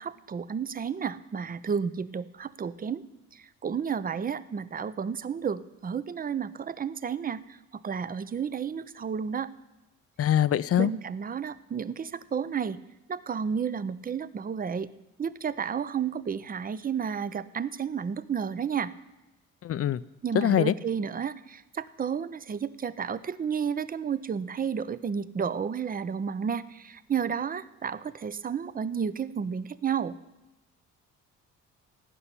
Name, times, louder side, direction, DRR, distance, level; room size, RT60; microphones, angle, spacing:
voice 1, 0.0-3.0 3.3-9.5 10.8-12.8 13.1-14.9 15.2-18.9 20.2-30.2, right 7 dB, 30° right, 17 dB, 0.6 m, -32 dB
voice 2, 10.2-10.9 19.6-20.0 20.3-20.7, left 11 dB, 50° left, 18 dB, 0.5 m, -23 dB
17.0 x 5.9 x 9.8 m, 1.0 s
cardioid pair, 90°, 30 cm